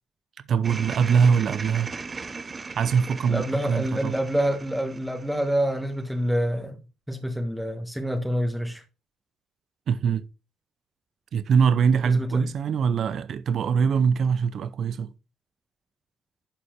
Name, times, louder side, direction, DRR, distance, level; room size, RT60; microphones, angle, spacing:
voice 1, 0.5-1.9 2.8-4.1 9.9-10.3 11.3-15.1, right 6 dB, 60° right, 0.7 m, -23 dB
sound 1, 0.6-6.1, right 4 dB, 30° right, 1.0 m, -38 dB
voice 2, 3.2-6.8 7.1-8.8 12.0-12.5, equal, 5° right, 1.5 m, -27 dB
11.5 x 4.3 x 4.7 m
cardioid pair, 90°, 0 cm